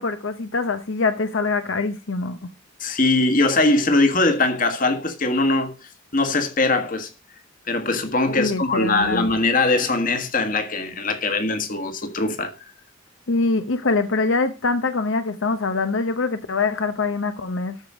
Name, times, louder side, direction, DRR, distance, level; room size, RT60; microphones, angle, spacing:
voice 1, 0.0-2.4 8.3-9.3 13.3-17.8, left 3 dB, 70° left, 0.8 m, -24 dB
voice 2, 2.8-5.7 6.1-7.1 7.7-12.5, left 2 dB, 40° left, 1.6 m, -21 dB
13.0 x 5.0 x 6.1 m
head